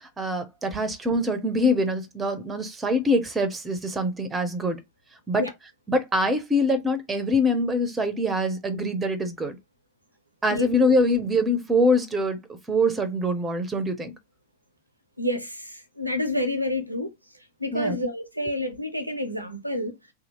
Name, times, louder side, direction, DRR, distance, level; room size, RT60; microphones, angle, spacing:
voice 1, 0.2-4.8 5.3-5.4 5.9-9.6 10.4-12.4 12.7-14.1 17.7-18.0, left 1 dB, 15° right, 0.6 m, -24 dB
voice 2, 15.2-17.1 17.6-19.9, left 1 dB, 85° right, 0.5 m, -28 dB
2.7 x 2.3 x 3.0 m
figure-of-eight pair, 90°, 0 cm